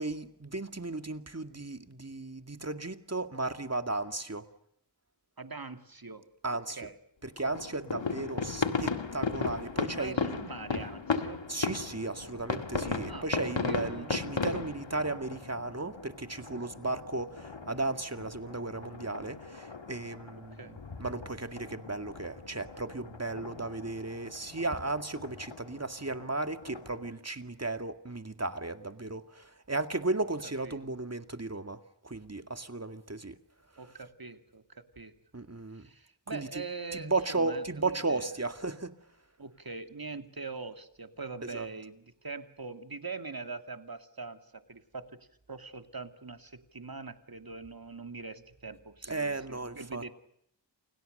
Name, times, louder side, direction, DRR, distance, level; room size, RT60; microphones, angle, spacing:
voice 1, 0.0-4.5 6.4-6.8 7.2-10.3 11.5-31.8 32.0-33.4 33.8-33.9 35.3-35.9 36.3-36.6 36.9-38.9 41.4-41.7 49.0-50.0, right 2 dB, 35° right, 8 dB, 2.1 m, -35 dB
voice 2, 5.4-6.3 6.8-6.9 10.0-11.5 13.1-13.3 13.7-14.4 20.5-20.7 30.6-30.8 33.8-35.1 35.7-38.3 39.4-45.2 45.5-50.1, right 4 dB, 55° right, 8 dB, 2.5 m, -43 dB
sound 1, 7.4-27.1, left 4 dB, 85° left, 2.0 m, -37 dB
29.5 x 29.0 x 6.7 m, 0.72 s
wide cardioid pair, 50°, 43 cm